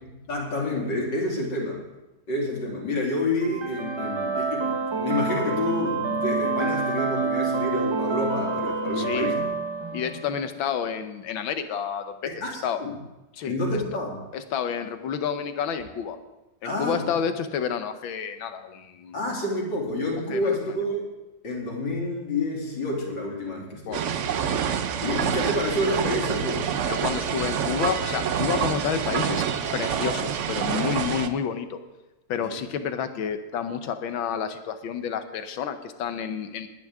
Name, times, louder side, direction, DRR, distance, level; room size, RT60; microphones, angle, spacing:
voice 1, 0.3-1.8 2.3-9.4 12.3-12.9 13.5-14.2 16.6-17.1 19.1-21.1 21.4-24.1 25.0-26.7 30.7-30.8 32.4-32.6, left 2 dB, 70° left, -2 dB, 3.5 m, -28 dB
sound 1, 3.4-10.4, right 3 dB, 30° right, 0.4 m, -27 dB
voice 2, 9.0-9.4 9.9-12.3 12.6-12.8 13.3-13.5 14.3-16.2 16.6-19.3 20.3-20.5 23.9-24.0 26.9-29.4 29.7-31.8 32.3-36.7, left 7 dB, 90° left, 9 dB, 1.7 m, -29 dB
sound 2, 23.9-31.3, right 8 dB, 65° right, 0.7 m, -27 dB
20.0 x 10.0 x 3.6 m, 1.0 s
omnidirectional pair, 2.1 m